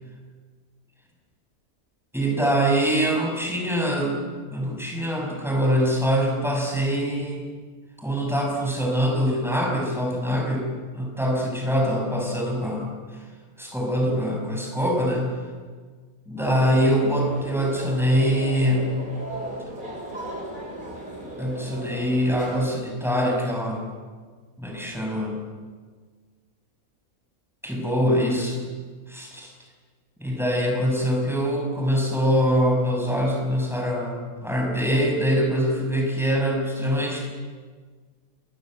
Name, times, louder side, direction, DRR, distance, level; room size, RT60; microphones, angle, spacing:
voice 1, 2.1-4.2 4.5-7.4 8.0-10.6 10.9-13.2 13.6-15.3 16.3-18.9 21.4-23.8 24.6-25.4 27.6-28.6 29.1-29.5 30.2-37.2, equal, ahead, 0 dB, 6.9 m, -24 dB
sound 1, 16.4-22.7, right 1 dB, 35° right, 6.0 m, -35 dB
27.0 x 22.0 x 7.9 m, 1.5 s
omnidirectional pair, 1.5 m